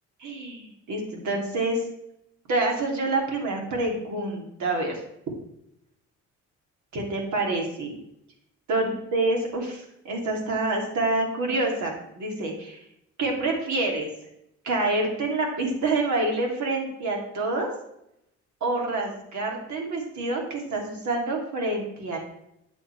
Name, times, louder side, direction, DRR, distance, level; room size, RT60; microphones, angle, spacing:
voice 1, 0.2-1.8 2.5-5.0 6.9-8.0 8.7-12.8 13.2-14.1 14.6-17.7 18.6-22.2, right 2 dB, 70° right, 0 dB, 3.1 m, -27 dB
10.5 x 9.2 x 3.4 m, 0.77 s
cardioid pair, 90°, 30 cm